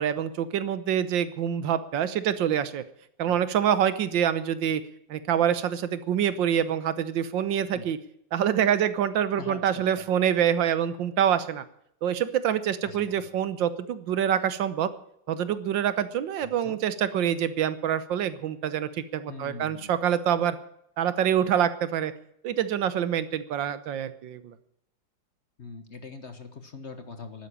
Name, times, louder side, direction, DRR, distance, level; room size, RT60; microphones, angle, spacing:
voice 1, 0.0-2.8 3.2-4.8 5.1-8.0 8.3-11.6 12.0-14.9 15.3-20.6 21.0-22.1 22.4-24.5, right 9 dB, 75° right, 13 dB, 1.6 m, -26 dB
voice 2, 9.4-9.8 12.8-13.3 16.4-16.8 19.3-20.0 25.6-27.5, left 4 dB, 40° left, 9 dB, 1.4 m, -42 dB
12.0 x 9.7 x 10.0 m, 0.73 s
omnidirectional pair, 2.1 m